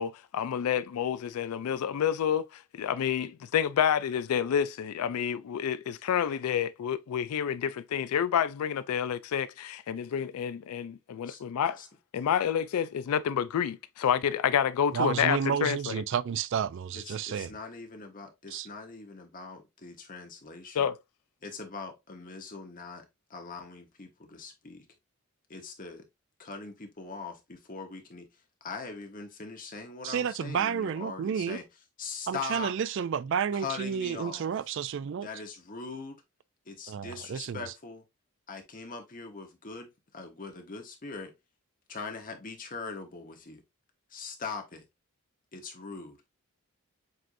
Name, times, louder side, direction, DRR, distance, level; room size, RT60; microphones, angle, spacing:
voice 1, 0.0-11.8 12.1-16.0 20.7-21.0, left 8 dB, 80° left, 0.3 m, -29 dB
voice 2, 14.9-17.6 18.5-18.7 30.0-31.6 32.3-35.3 36.9-37.7, right 7 dB, 55° right, 0.3 m, -31 dB
voice 3, 16.9-20.9 21.4-24.8 25.5-26.0 26.4-28.3 28.6-31.6 32.0-32.7 33.5-34.5 35.2-36.2 36.7-38.0 38.5-39.9 40.1-41.3 41.9-43.6 44.1-44.8 45.5-46.2, left 4 dB, 40° left, 1.0 m, -41 dB
7.6 x 2.6 x 2.5 m
head